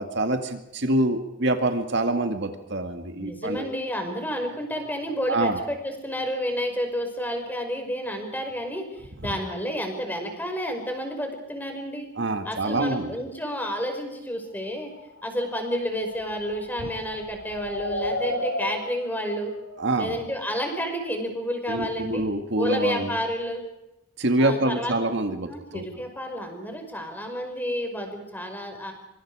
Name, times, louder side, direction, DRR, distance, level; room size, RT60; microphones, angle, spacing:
voice 1, 0.0-3.7 5.3-5.6 9.2-9.4 12.2-13.2 16.8-16.9 19.8-20.2 21.7-23.2 24.2-25.8, right 2 dB, 60° right, 6 dB, 2.1 m, -26 dB
voice 2, 3.1-12.1 12.5-14.9 15.2-19.5 20.0-22.3 22.6-23.6 24.4-24.9 25.5-28.9, equal, 10° left, 4 dB, 5.5 m, -30 dB
sound 1, 15.0-20.8, left 1 dB, 85° left, 6.3 m, -35 dB
26.0 x 25.5 x 5.0 m, 0.93 s
head